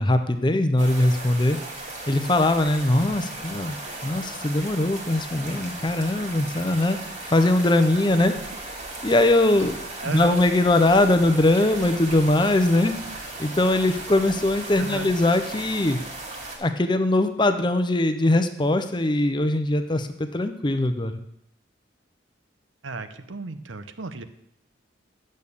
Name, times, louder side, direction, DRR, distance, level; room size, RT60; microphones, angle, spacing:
voice 1, 0.0-1.6 2.1-3.8 4.0-7.0 7.3-8.3 9.0-9.8 10.0-12.9 13.4-16.0 16.6-21.2, left 1 dB, 25° left, 9 dB, 0.6 m, -21 dB
sound 1, 0.8-16.6, right 2 dB, 40° right, 1.9 m, -37 dB
voice 2, 10.0-10.4 13.6-13.9 14.8-15.1 22.8-24.2, right 3 dB, 85° right, 10 dB, 0.8 m, -35 dB
8.8 x 6.5 x 7.0 m, 0.79 s
head